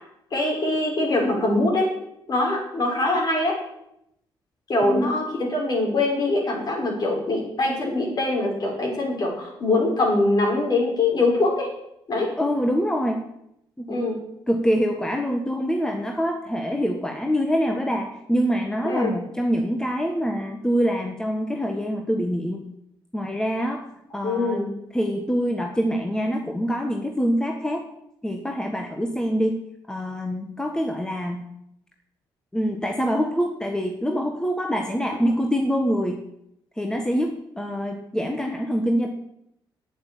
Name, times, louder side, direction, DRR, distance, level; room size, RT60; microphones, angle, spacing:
voice 1, 0.3-1.9 2.3-3.6 4.7-11.7 12.1-12.3 13.9-14.2 18.8-19.1 24.2-24.7, left 2 dB, 50° left, -1 dB, 5.5 m, -23 dB
voice 2, 4.8-5.1 12.4-13.3 13.8-14.1 14.5-22.6 23.1-23.9 24.1-24.6 24.9-27.9 28.2-29.6 29.9-31.5 32.5-36.2 36.8-39.1, equal, 10° left, 3 dB, 1.4 m, -25 dB
9.4 x 8.6 x 8.5 m, 0.78 s
cardioid pair, 90°, 9 cm